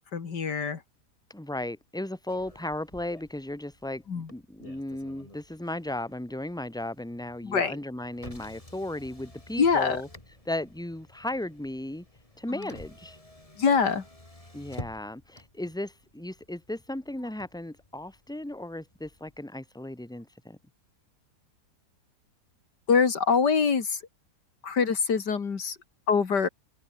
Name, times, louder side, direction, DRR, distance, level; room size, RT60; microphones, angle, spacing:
voice 1, 0.1-0.8 4.1-4.3 7.4-7.7 9.6-10.0 12.5-12.7 13.6-14.0 22.9-24.0 24.6-25.8 26.1-26.5, left 5 dB, 80° left, 2.8 m, -24 dB
voice 2, 1.3-10.1 10.5-12.0 12.4-13.2 14.5-20.6, left 1 dB, ahead, 2.7 m, -35 dB
Motor vehicle (road), 2.3-19.4, left 1 dB, 20° left, 4.1 m, -51 dB
omnidirectional pair, 1.8 m